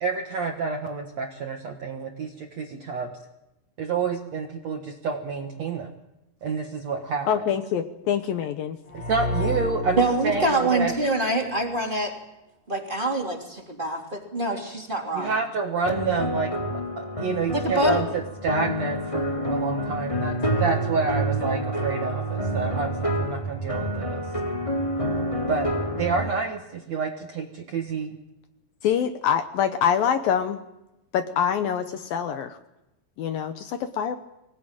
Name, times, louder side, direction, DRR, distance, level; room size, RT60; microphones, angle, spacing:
voice 1, 0.0-3.1 3.8-5.9 6.4-7.3 8.9-10.9 15.1-16.5 17.0-24.2 25.5-25.7 26.0-28.1, right 4 dB, 55° right, 3 dB, 2.0 m, -28 dB
voice 2, 7.3-8.8 28.8-30.6 31.1-32.6 33.2-34.2, left 8 dB, 70° left, 8 dB, 2.5 m, -25 dB
sound 1, 8.9-11.7, left 1 dB, 35° left, 4.2 m, -31 dB
voice 3, 10.0-12.1 12.7-15.3 17.5-18.0, right 2 dB, 15° right, 1 dB, 2.6 m, -25 dB
sound 2, 15.9-26.3, right 1 dB, 10° left, 1.8 m, -28 dB
25.0 x 19.0 x 9.0 m, 0.92 s
omnidirectional pair, 4.8 m